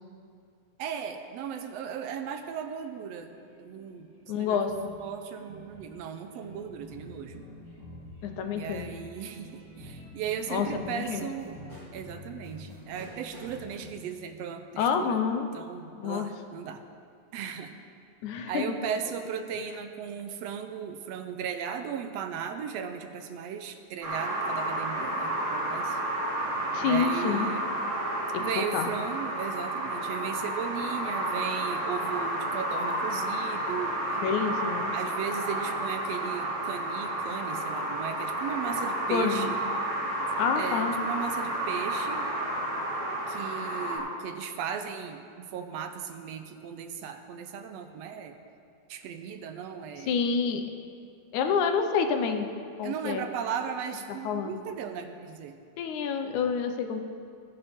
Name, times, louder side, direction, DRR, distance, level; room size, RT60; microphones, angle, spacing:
voice 1, 0.8-3.3 3.6-4.6 5.0-7.4 8.5-11.6 11.9-15.2 15.5-16.9 17.3-17.8 18.5-26.0 26.9-27.7 28.4-34.0 34.9-39.6 40.6-42.3 43.3-48.4 48.9-50.2 51.4-51.5 52.8-55.6, right 7 dB, 75° right, 7 dB, 1.7 m, -36 dB
sound 1, 2.2-2.7 3.3-13.9, equal, 20° right, 3.8 m, -47 dB
voice 2, 4.3-4.9 8.2-8.9 10.5-11.2 14.8-15.5 16.0-16.3 18.2-18.8 26.7-27.5 28.3-28.9 34.2-34.9 39.1-39.5 40.4-41.0 50.0-50.6 51.3-52.5 52.8-53.2 54.2-54.6 55.8-57.0, left 6 dB, 85° left, 6 dB, 2.3 m, -28 dB
sound 2, 24.0-44.0, right 1 dB, 50° right, 4.2 m, -31 dB
18.0 x 9.8 x 3.6 m, 2.4 s
omnidirectional pair, 3.3 m